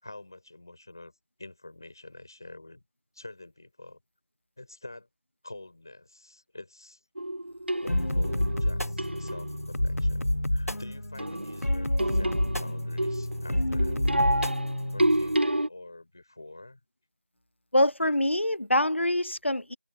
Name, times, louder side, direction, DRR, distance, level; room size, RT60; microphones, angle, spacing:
voice 1, 0.0-1.1 1.4-2.8 3.1-4.0 4.6-5.1 5.4-7.0 7.8-14.0 14.9-16.8, left 2 dB, 15° left, 5.2 m, -47 dB
sound 1, 7.2-9.7 11.2-15.7, right 1 dB, 45° right, 0.4 m, -29 dB
sound 2, 7.9-15.4, left 1 dB, 85° left, 1.3 m, -29 dB
voice 2, 17.7-19.8, left 1 dB, 55° left, 0.8 m, -25 dB
figure-of-eight pair, 175°, 8 cm